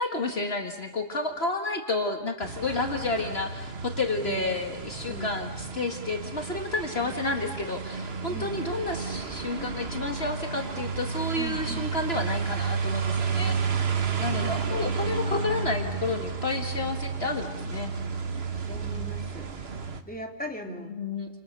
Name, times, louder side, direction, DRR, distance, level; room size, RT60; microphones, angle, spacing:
voice 1, 0.0-13.6 14.2-17.9 20.9-21.3, left 2 dB, 50° left, 4 dB, 2.0 m, -30 dB
sound 1, 2.4-20.0, right 5 dB, 50° right, 1.6 m, -32 dB
voice 2, 8.3-8.6 11.4-11.9 14.3-15.0 18.7-19.5 20.1-20.9, equal, 5° left, 2 dB, 2.8 m, -39 dB
29.5 x 28.0 x 6.7 m, 1.0 s
omnidirectional pair, 1.4 m